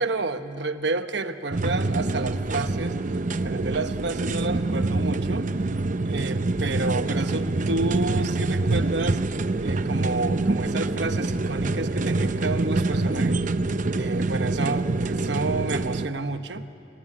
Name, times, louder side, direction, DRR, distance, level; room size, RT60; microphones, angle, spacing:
voice 1, 0.0-3.0 3.3-5.5 6.0-9.2 9.6-13.4 13.9-16.7, right 3 dB, 70° right, 9 dB, 1.2 m, -30 dB
sound 1, 1.5-16.1, right 2 dB, 45° right, 0.7 m, -25 dB
30.0 x 22.5 x 8.8 m, 2.7 s
head